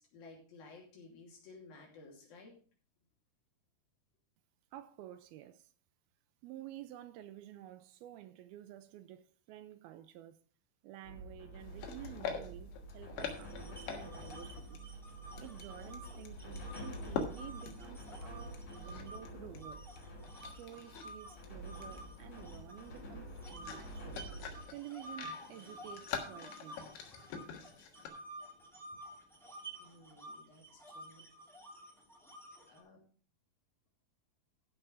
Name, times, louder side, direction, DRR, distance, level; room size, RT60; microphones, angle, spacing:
voice 1, 0.0-2.5 29.8-31.3 32.7-33.0, left 3 dB, 65° left, 4.5 m, -55 dB
voice 2, 4.7-5.7 6.4-10.4 10.8-14.8 15.4-19.9 20.5-24.2 24.7-26.8, right 13 dB, 80° right, 2.4 m, -51 dB
sound 1, 11.0-24.6, right 1 dB, 40° left, 2.5 m, -48 dB
sound 2, 11.6-14.4 14.7-14.8 15.4-19.3 19.5-20.0 20.2-21.1 21.4-28.1, left 6 dB, 85° left, 3.5 m, -45 dB
sound 3, 13.2-19.2 19.6-23.0 23.4-32.8, right 1 dB, ahead, 1.5 m, -51 dB
14.5 x 5.9 x 4.8 m
omnidirectional pair, 4.5 m